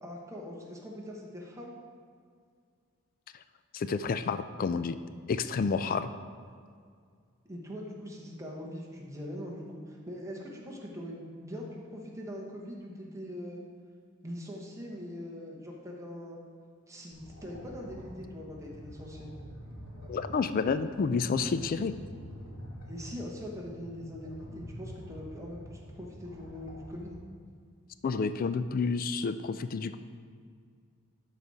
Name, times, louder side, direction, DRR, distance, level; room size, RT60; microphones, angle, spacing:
voice 1, 0.0-1.8 7.5-13.6 14.2-16.4 16.9-19.3 22.9-27.2, equal, 15° right, -2 dB, 1.1 m, -42 dB
voice 2, 3.7-5.0 5.3-6.1 20.1-21.9 28.0-30.0, left 5 dB, 40° left, 12 dB, 0.3 m, -29 dB
sound 1, 17.1-27.1, equal, 85° left, 2.3 m, -46 dB
12.0 x 4.2 x 4.7 m, 2.1 s
head